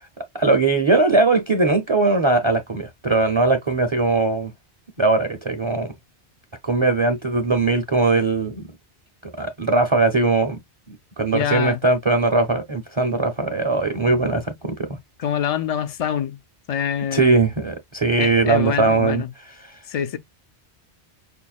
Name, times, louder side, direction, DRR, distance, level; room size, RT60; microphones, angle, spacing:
voice 1, 0.3-4.5 5.0-5.9 6.6-8.7 9.2-10.6 10.9-14.9 17.1-19.2 19.6-19.8, right 3 dB, 35° right, 0.5 m, -20 dB
voice 2, 11.3-11.8 15.2-16.4 16.7-17.4 18.2-19.3 19.9-20.2, left 9 dB, 60° left, 0.4 m, -25 dB
5.5 x 2.1 x 2.3 m
omnidirectional pair, 1.2 m